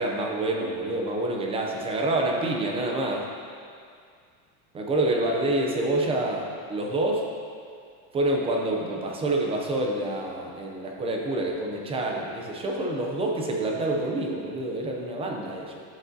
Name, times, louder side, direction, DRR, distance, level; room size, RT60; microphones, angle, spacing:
voice 1, 0.0-3.3 4.7-7.3 8.1-15.8, right 2 dB, 15° right, 0 dB, 0.4 m, -27 dB
11.5 x 7.5 x 2.7 m, 2.2 s
cardioid pair, 170°, 43 cm